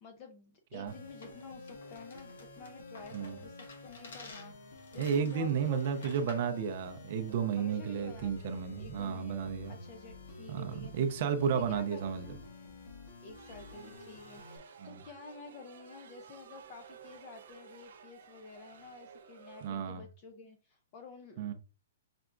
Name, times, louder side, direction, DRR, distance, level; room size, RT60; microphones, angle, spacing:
voice 1, 0.0-5.8 7.6-8.5 8.8-10.9 11.4-12.4 13.2-21.5, left 4 dB, 25° left, 0.5 m, -51 dB
sound 1, 0.9-14.6, left 2 dB, 55° left, 1.4 m, -50 dB
sound 2, 1.2-6.6, left 3 dB, 75° left, 1.6 m, -52 dB
voice 2, 5.0-9.7 10.5-12.3 14.8-15.0 19.6-20.0 21.4-21.5, right 7 dB, 35° right, 0.5 m, -32 dB
sound 3, 13.3-19.7, right 7 dB, 70° right, 0.9 m, -54 dB
5.8 x 3.3 x 2.5 m
hypercardioid pair, 180°, 0 cm